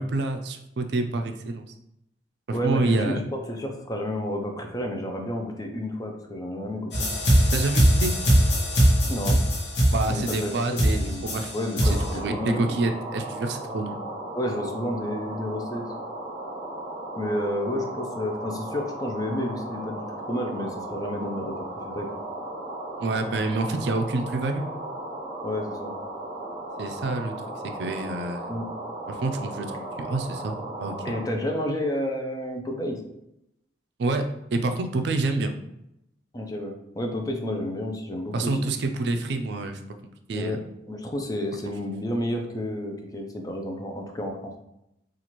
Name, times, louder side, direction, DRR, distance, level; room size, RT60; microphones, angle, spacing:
voice 1, 0.0-1.6 2.5-3.2 7.5-8.1 9.9-14.0 23.0-24.6 26.8-27.3 27.7-28.5 29.1-29.7 30.0-30.9 34.0-34.2 34.5-35.5 38.3-39.8 40.3-40.6, right 2 dB, 65° right, 6 dB, 0.4 m, -27 dB
voice 2, 2.5-3.2 3.5-7.1 9.1-9.4 10.1-10.5 10.9-12.8 14.3-15.9 17.2-22.1 25.4-26.0 28.5-28.7 31.0-33.0 36.3-38.7 40.3-40.6 40.9-44.5, left 1 dB, 20° left, 3 dB, 0.5 m, -31 dB
sound 1, 6.9-12.1, equal, 70° left, 0.9 m, -21 dB
sound 2, 11.8-31.2, right 1 dB, 25° right, 1.2 m, -36 dB
4.3 x 2.4 x 2.9 m, 0.83 s
head